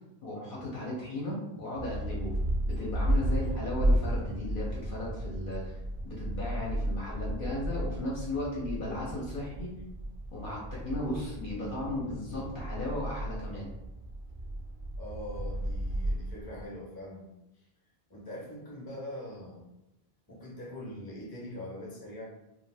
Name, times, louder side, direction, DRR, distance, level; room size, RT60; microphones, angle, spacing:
voice 1, 0.2-2.3 2.7-5.8 6.0-9.7 10.3-13.7, left 1 dB, 60° left, -5 dB, 0.8 m, -36 dB
sound 1, 1.8-16.7, right 1 dB, 60° right, 0.6 m, -33 dB
voice 2, 15.0-17.3 17.6-17.7 18.1-19.6 20.3-22.2, left 1 dB, 25° left, -4 dB, 0.7 m, -42 dB
2.5 x 2.1 x 3.3 m, 0.93 s
omnidirectional pair, 1.1 m